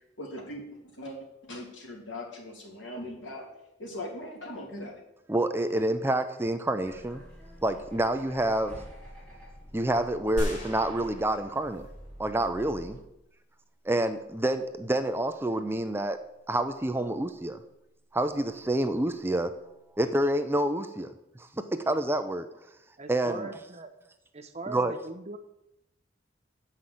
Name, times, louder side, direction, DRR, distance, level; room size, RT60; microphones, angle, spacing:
voice 1, 0.2-0.6 0.9-5.0, left 1 dB, 85° left, -1 dB, 2.8 m, -40 dB
voice 2, 5.3-7.2 7.6-8.8 9.7-11.8 12.2-13.0 13.8-16.2 16.5-17.6 18.1-19.5 20.0-21.1 21.6-22.5 23.1-23.5 24.7-24.9, right 1 dB, 10° right, 9 dB, 0.5 m, -28 dB
sound 1, 6.8-13.0, equal, 10° left, 4.2 m, -48 dB
sound 2, 10.4-12.1 12.6-12.7, equal, 40° left, 2.9 m, -35 dB
voice 3, 23.0-23.9 24.3-25.4, right 3 dB, 35° right, 7 dB, 0.9 m, -40 dB
8.5 x 5.8 x 7.8 m, 0.86 s
head